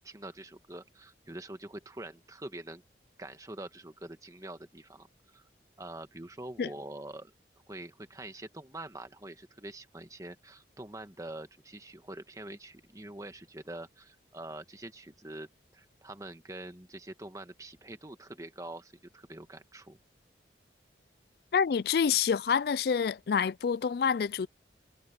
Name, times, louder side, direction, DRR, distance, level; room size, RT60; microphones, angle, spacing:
voice 1, 0.0-2.8 3.2-5.4 5.8-7.3 7.7-15.5 15.7-20.0, right 1 dB, 20° right, 1.4 m, -45 dB
voice 2, 21.5-24.5, left 6 dB, 60° left, 0.3 m, -27 dB
head